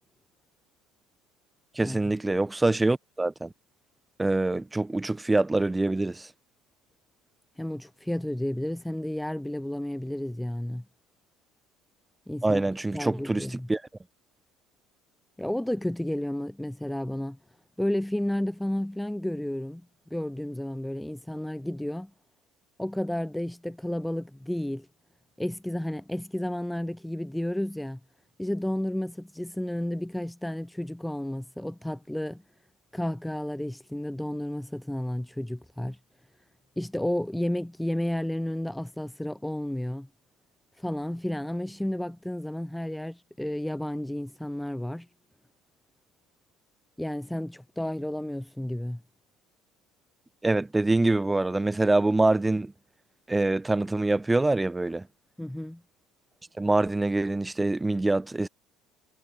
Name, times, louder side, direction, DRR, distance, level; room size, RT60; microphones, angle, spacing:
voice 1, 1.7-3.5 4.2-6.3 12.4-13.8 50.4-52.7 53.3-55.1 56.6-58.5, right 2 dB, 15° right, 1.1 m, -25 dB
voice 2, 7.6-10.8 12.3-12.6 12.9-13.7 15.4-17.4 17.8-19.8 20.1-22.1 22.8-24.9 25.4-28.0 28.4-32.4 32.9-36.0 36.8-40.1 40.8-45.1 47.0-49.0 55.4-55.8, left 1 dB, 5° left, 0.6 m, -32 dB
figure-of-eight pair, 60°, 0 cm